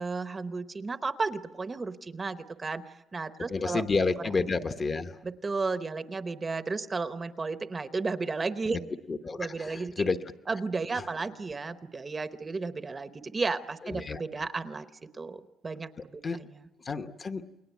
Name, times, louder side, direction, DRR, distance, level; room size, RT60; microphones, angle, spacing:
voice 1, 0.0-3.8 5.2-8.8 9.4-10.1 10.5-16.2, right 4 dB, 20° right, 10 dB, 0.9 m, -33 dB
voice 2, 3.5-5.2 9.1-10.3 10.9-11.1 13.9-14.2 16.2-16.4 16.8-17.5, left 4 dB, 25° left, 8 dB, 0.9 m, -30 dB
29.0 x 22.0 x 8.2 m, 0.97 s
cardioid pair, 175°, 0 cm